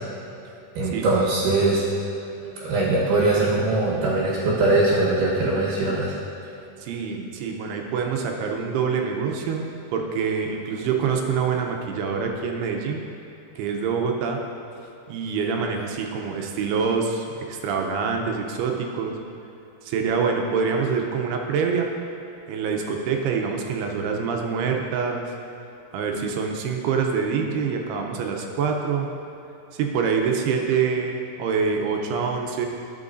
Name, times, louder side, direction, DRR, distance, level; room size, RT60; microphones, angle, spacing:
voice 1, 0.8-1.8 2.6-6.2, right 2 dB, 65° right, -6 dB, 2.4 m, -21 dB
voice 2, 6.8-13.0 13.6-14.4 15.1-19.1 19.8-21.9 22.5-25.3 25.9-29.1 29.7-32.7, right 5 dB, 85° right, 2 dB, 2.7 m, -25 dB
12.0 x 7.5 x 2.6 m, 2.8 s
omnidirectional pair, 4.6 m